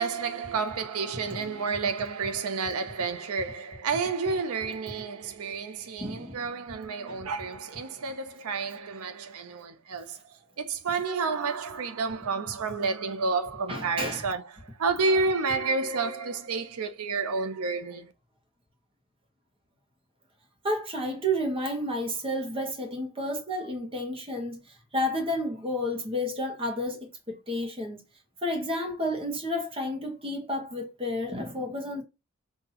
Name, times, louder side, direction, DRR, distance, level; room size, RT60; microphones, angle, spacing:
voice 1, 0.0-10.2 10.6-18.1, right 4 dB, 80° right, 0.6 m, -30 dB
voice 2, 1.1-1.7 6.0-6.5 7.1-7.2 13.7-14.3 20.6-24.6 24.9-28.0 28.4-32.0, equal, 25° right, 1.2 m, -31 dB
5.7 x 2.8 x 2.9 m
head